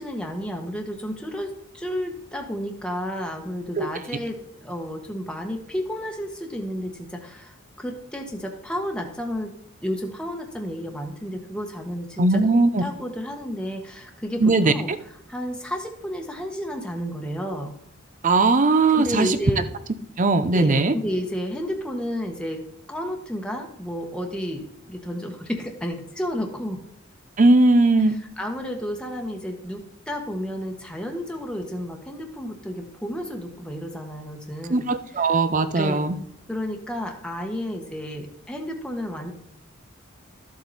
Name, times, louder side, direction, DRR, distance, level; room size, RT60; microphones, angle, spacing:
voice 1, 0.0-9.5 9.8-12.4 12.8-14.9 15.3-17.7 18.9-19.7 20.5-26.8 28.4-34.9 35.2-35.3 35.7-36.0 36.5-39.3, equal, 5° left, 1 dB, 1.2 m, -31 dB
voice 2, 12.2-12.8 14.4-14.7 18.2-19.4 20.2-20.9 27.4-28.2 34.7-36.2, right 3 dB, 40° right, 11 dB, 0.6 m, -19 dB
13.0 x 7.5 x 4.1 m, 0.72 s
head